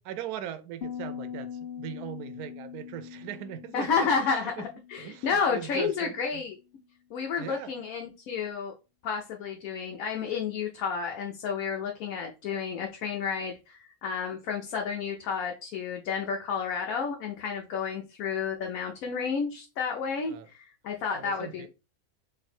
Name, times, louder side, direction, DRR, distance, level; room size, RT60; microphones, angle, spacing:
voice 1, 0.0-4.7 5.0-6.4 7.4-7.7 20.3-20.5 21.1-21.7, right 10 dB, 80° right, 1.0 m, -40 dB
Piano, 0.8-6.4, left 8 dB, 45° left, 1.0 m, -42 dB
voice 2, 3.7-6.6 7.1-8.7 9.0-21.7, left 6 dB, 70° left, 1.0 m, -31 dB
3.2 x 2.6 x 4.1 m
omnidirectional pair, 1.6 m